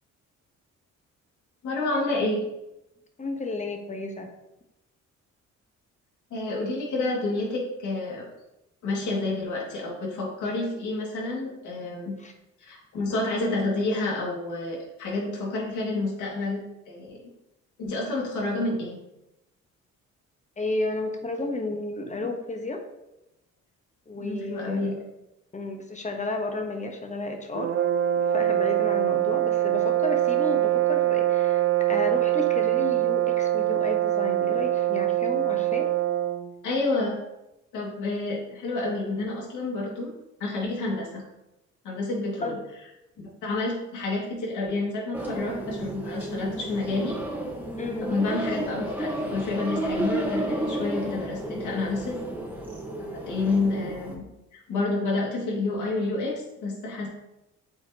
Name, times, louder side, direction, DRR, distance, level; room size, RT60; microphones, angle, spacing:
voice 1, 1.6-2.4 6.3-8.2 8.8-12.2 12.6-17.3 17.8-19.0 24.2-24.9 36.6-37.2 37.7-40.1 40.4-41.2 41.8-42.6 43.2-47.2 48.0-52.2 53.0-54.3 54.5-57.1, left 2 dB, 80° left, -3 dB, 2.1 m, -29 dB
voice 2, 3.2-4.3 12.2-12.3 20.6-22.8 24.1-25.0 25.5-27.7 28.3-35.9 42.4-42.6 47.8-48.2, left 2 dB, 25° left, 4 dB, 1.1 m, -32 dB
sound 1, 27.6-36.5, right 13 dB, 45° right, 0.6 m, -24 dB
sound 2, 45.1-54.2, right 1 dB, 5° right, 1.2 m, -32 dB
7.8 x 4.2 x 2.8 m, 0.90 s
cardioid pair, 90°, 30 cm